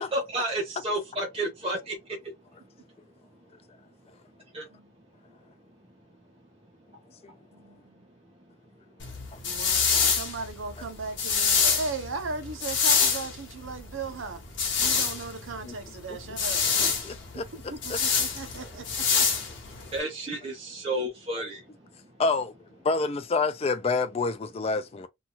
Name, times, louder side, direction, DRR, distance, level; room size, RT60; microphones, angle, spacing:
voice 1, 0.1-1.9 4.5-4.6 19.9-21.6, right 1 dB, 30° right, 0.6 m, -31 dB
voice 2, 7.5-8.0 9.4-14.4 14.8-16.6 17.5-18.8, right 3 dB, 75° right, 0.7 m, -37 dB
sound 1, 9.0-20.0, left 6 dB, 60° left, 0.9 m, -26 dB
voice 3, 17.0-17.5 17.9-18.0 22.2-22.5 22.8-25.1, left 3 dB, 30° left, 0.3 m, -27 dB
2.7 x 2.3 x 2.8 m
head